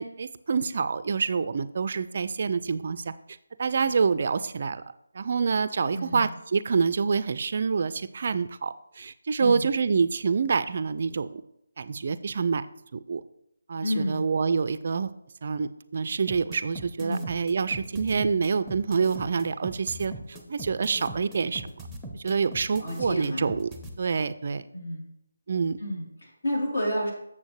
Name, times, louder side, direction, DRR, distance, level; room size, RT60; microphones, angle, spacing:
voice 1, 0.0-3.1 3.6-4.8 5.1-11.4 11.8-12.7 12.9-13.2 13.7-15.1 15.4-20.1 20.5-21.6 22.1-24.6 25.5-25.8, right 5 dB, 45° right, 14 dB, 0.3 m, -27 dB
voice 2, 5.9-6.3 9.4-9.7 13.8-14.2 17.0-17.3 22.8-23.5 24.7-25.1 25.8-27.1, equal, 65° left, -3 dB, 3.4 m, -30 dB
sound 1, 16.3-23.9, right 1 dB, ahead, 0.8 m, -40 dB
8.1 x 7.1 x 3.2 m, 0.80 s
figure-of-eight pair, 155°, 0 cm